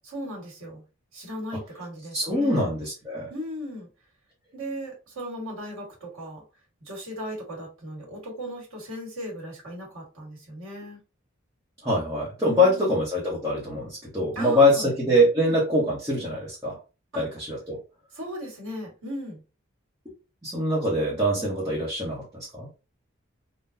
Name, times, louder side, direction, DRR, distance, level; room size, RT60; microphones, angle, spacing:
voice 1, 0.0-0.8 1.1-2.7 3.3-3.9 4.5-6.4 6.8-11.0 12.4-12.9 14.4-15.6 17.1-17.2 18.1-19.4 21.3-21.5, equal, 85° right, -2 dB, 1.8 m, -37 dB
voice 2, 2.1-3.3 11.8-16.8 17.1-17.8 20.4-22.7, left 1 dB, 15° right, -6 dB, 1.0 m, -24 dB
3.7 x 2.2 x 2.7 m, 0.31 s
head